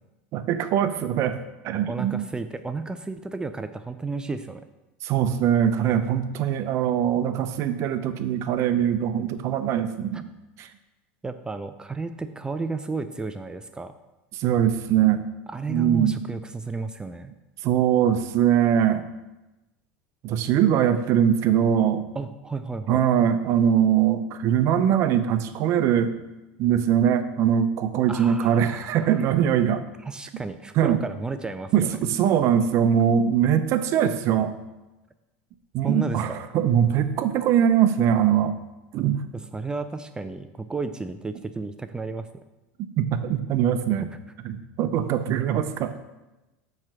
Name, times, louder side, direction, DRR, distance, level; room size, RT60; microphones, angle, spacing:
voice 1, 0.3-1.4 1.6-2.3 5.0-10.3 10.6-10.7 14.3-15.2 15.7-16.1 17.6-19.0 20.2-22.0 22.9-26.1 26.6-29.8 30.8-31.0 31.7-34.5 35.7-38.6 38.9-39.2 43.0-44.0 44.4-45.9, right 9 dB, 50° right, 10 dB, 0.6 m, -22 dB
voice 2, 1.9-4.6 11.2-13.9 15.5-17.3 22.2-23.0 28.1-29.2 30.0-32.0 35.8-36.3 39.3-42.3 44.1-44.2, right 3 dB, 15° right, 9 dB, 0.4 m, -32 dB
7.2 x 3.3 x 6.1 m, 1.0 s
hypercardioid pair, 100°, 6 cm